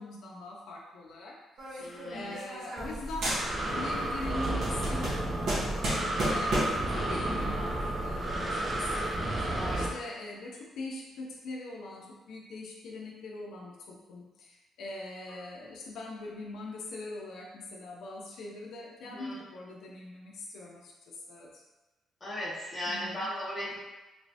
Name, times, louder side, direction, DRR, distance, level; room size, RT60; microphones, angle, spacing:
voice 1, 0.0-21.5 22.9-23.3, left 2 dB, 75° left, -2 dB, 0.5 m, -42 dB
sound 1, 1.6-3.0 3.2-3.9 4.2-6.9, right 1 dB, 65° right, 1.1 m, -33 dB
voice 2, 1.8-2.4 9.5-9.9 15.3-15.4 19.1-19.4 22.2-23.8, left 1 dB, 15° left, -7 dB, 1.2 m, -37 dB
Breathing, 2.8-9.9, right 1 dB, 20° right, 0.5 m, -32 dB
3.1 x 3.0 x 2.7 m, 1.1 s
cardioid pair, 145°, 0 cm